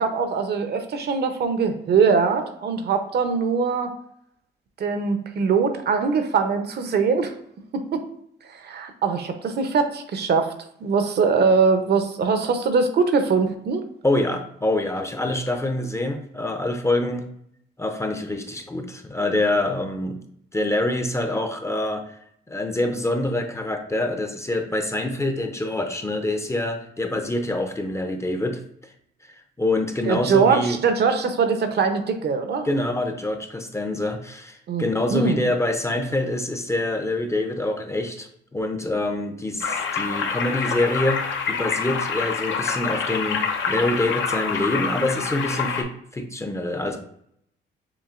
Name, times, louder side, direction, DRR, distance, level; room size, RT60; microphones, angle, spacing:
voice 1, 0.0-3.9 4.8-7.3 7.7-8.0 8.6-10.5 10.8-13.8 30.1-32.7 34.7-35.4, right 5 dB, 55° right, 7 dB, 0.7 m, -22 dB
voice 2, 14.0-17.3 17.8-20.2 20.5-22.2 22.5-28.6 29.6-30.8 32.6-47.0, left 1 dB, 15° left, 5 dB, 0.6 m, -25 dB
sound 1, 39.6-45.8, left 6 dB, 75° left, 0.7 m, -26 dB
7.0 x 2.6 x 2.5 m, 0.71 s
cardioid pair, 90°, 20 cm